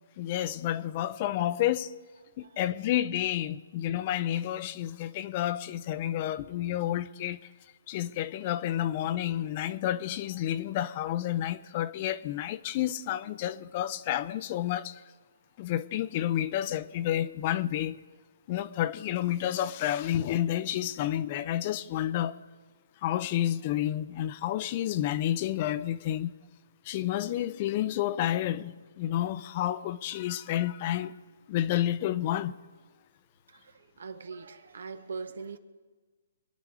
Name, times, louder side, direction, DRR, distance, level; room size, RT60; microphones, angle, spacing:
voice 1, 0.2-1.9 2.4-7.4 7.9-15.0 15.6-18.0 18.5-22.3 23.0-26.3 26.8-31.1 31.5-32.5, left 12 dB, 35° left, 0.6 m, -30 dB
voice 2, 33.5-35.6, right 4 dB, 70° right, 1.2 m, -41 dB
26.0 x 10.5 x 4.9 m
hypercardioid pair, 150°, 0 cm